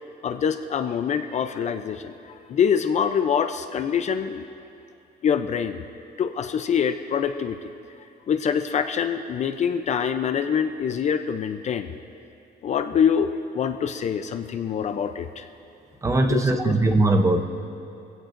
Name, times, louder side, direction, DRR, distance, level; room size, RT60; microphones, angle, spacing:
voice 1, 0.2-4.5 5.2-5.9 6.2-7.7 8.3-11.9 12.6-15.5 16.3-16.7, left 7 dB, 40° left, 8 dB, 0.5 m, -25 dB
voice 2, 16.0-17.4, right 2 dB, 15° right, 5 dB, 0.7 m, -20 dB
24.0 x 16.0 x 2.6 m, 2.7 s
cardioid pair, 170°, 18 cm